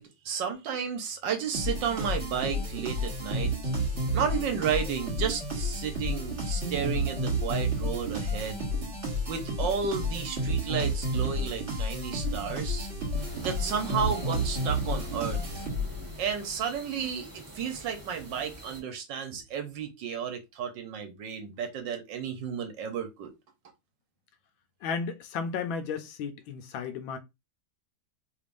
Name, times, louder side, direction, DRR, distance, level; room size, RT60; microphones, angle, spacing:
voice 1, 0.0-3.5 4.1-8.6 9.3-12.9 13.4-15.6 16.2-23.3, right 7 dB, 70° right, 1.3 m, -32 dB
sound 1, 1.5-16.1, equal, 35° right, 1.9 m, -31 dB
sound 2, 13.2-18.8, right 1 dB, 15° right, 0.9 m, -44 dB
voice 2, 24.8-27.2, left 5 dB, 75° left, 1.3 m, -33 dB
3.4 x 3.3 x 2.5 m
omnidirectional pair, 2.2 m